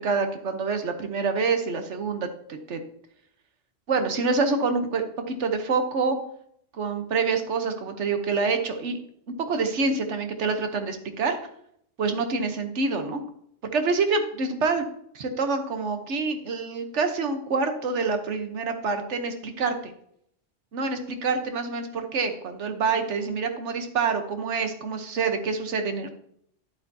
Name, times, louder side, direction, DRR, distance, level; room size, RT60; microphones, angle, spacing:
voice 1, 0.0-2.3 2.7-2.8 3.9-6.2 6.7-9.0 9.5-11.4 12.0-13.2 13.7-14.9 15.1-19.9 20.7-26.1, right 4 dB, 70° right, 7 dB, 1.3 m, -26 dB
11.0 x 8.0 x 2.8 m, 0.70 s
omnidirectional pair, 1.3 m